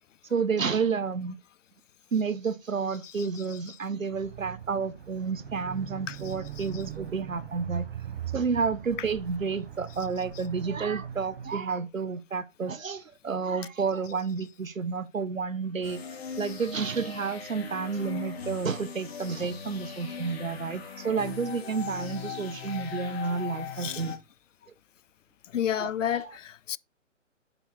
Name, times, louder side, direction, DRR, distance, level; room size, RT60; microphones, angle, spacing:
voice 1, 0.3-1.4 2.1-7.9 8.3-16.0 16.4-24.1 25.7-26.4, right 5 dB, 85° right, 0.9 m, -30 dB
sound 1, 4.1-11.6, right 9 dB, 50° right, 1.1 m, -40 dB
sound 2, 15.8-24.2, left 6 dB, 50° left, 2.2 m, -39 dB
voice 2, 25.5-26.8, left 10 dB, 70° left, 0.5 m, -30 dB
8.6 x 5.7 x 4.0 m
figure-of-eight pair, 130°, 39 cm